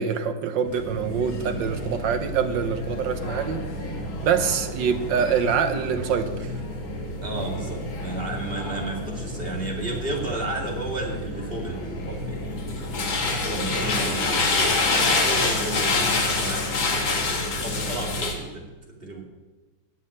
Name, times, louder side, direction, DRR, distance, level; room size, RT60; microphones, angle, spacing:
voice 1, 0.0-3.7 4.2-6.5 13.7-13.9, right 7 dB, 70° right, 9 dB, 1.6 m, -25 dB
sound 1, 0.7-18.3, left 2 dB, 75° left, 2.6 m, -28 dB
voice 2, 7.2-12.4 13.3-17.2 17.6-19.2, right 2 dB, 30° right, 0 dB, 2.5 m, -33 dB
16.0 x 5.6 x 9.8 m, 1.2 s
omnidirectional pair, 2.2 m